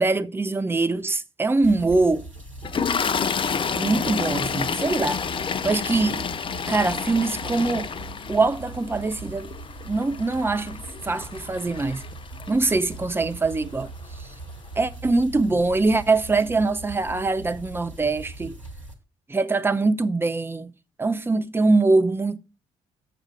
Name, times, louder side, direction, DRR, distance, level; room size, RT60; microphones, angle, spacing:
voice 1, 0.0-2.2 3.7-5.2 5.6-6.3 6.7-7.9 8.3-9.5 9.8-12.0 12.5-14.3 14.8-18.6 19.3-20.7 21.0-22.4, right 3 dB, 15° right, 0.7 m, -23 dB
sound 1, 1.6-18.9, right 3 dB, 90° right, 1.0 m, -41 dB
Toilet flush, 2.6-12.9 13.9-14.1 14.3-14.5, left 6 dB, 30° left, 0.6 m, -30 dB
7.2 x 6.5 x 4.8 m
figure-of-eight pair, 45°, 16 cm